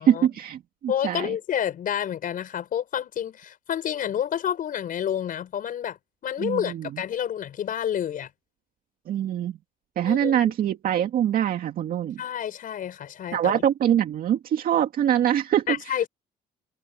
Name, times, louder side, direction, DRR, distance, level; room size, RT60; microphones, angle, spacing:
voice 1, 0.0-1.3 6.4-7.0 9.1-9.6 10.0-12.2 13.3-15.7, right 10 dB, 60° right, 2.1 m, -24 dB
voice 2, 0.9-6.0 6.2-8.3 10.0-10.4 12.2-13.6 15.7-16.1, left 9 dB, 55° left, 5.4 m, -29 dB
cardioid pair, 110°, 17 cm